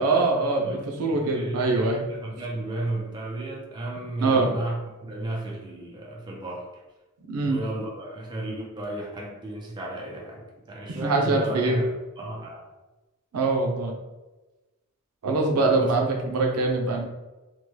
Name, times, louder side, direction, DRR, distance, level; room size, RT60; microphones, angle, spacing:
voice 1, 0.0-2.0 4.2-4.5 7.3-7.6 10.9-11.8 13.3-14.0 15.2-17.1, right 3 dB, 85° right, 2 dB, 0.5 m, -23 dB
voice 2, 0.6-6.8 7.4-12.7 15.6-15.9, right 2 dB, 20° right, -2 dB, 0.5 m, -34 dB
3.0 x 2.2 x 3.0 m, 1.1 s
head